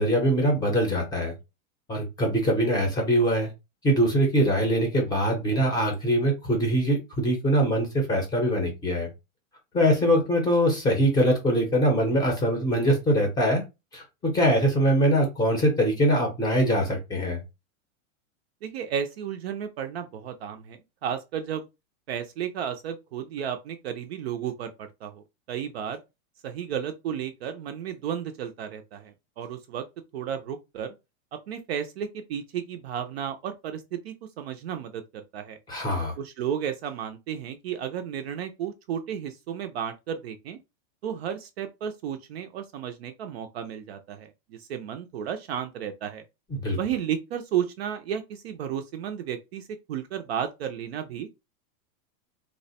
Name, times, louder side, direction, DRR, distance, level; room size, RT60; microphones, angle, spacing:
voice 1, 0.0-1.3 1.9-3.5 3.8-9.1 9.7-13.6 13.9-17.4 35.7-36.1 46.5-46.8, equal, 10° left, 0.6 m, -23 dB
voice 2, 18.6-21.7 22.1-26.0 26.4-29.8 30.1-30.9 31.5-35.6 36.2-40.6 41.0-46.2 46.8-51.3, right 9 dB, 50° right, 0.4 m, -33 dB
2.9 x 2.1 x 4.0 m
supercardioid pair, 165°, 43 cm